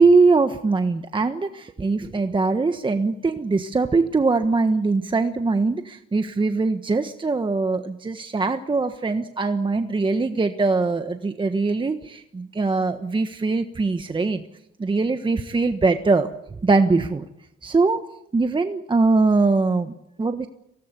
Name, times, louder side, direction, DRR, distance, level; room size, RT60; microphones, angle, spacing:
voice 1, 0.0-14.4 14.8-16.3 16.6-17.2 17.6-18.0 18.3-20.5, right 3 dB, 25° right, 7 dB, 1.4 m, -21 dB
24.5 x 18.0 x 8.4 m, 0.84 s
cardioid pair, 90°, 20 cm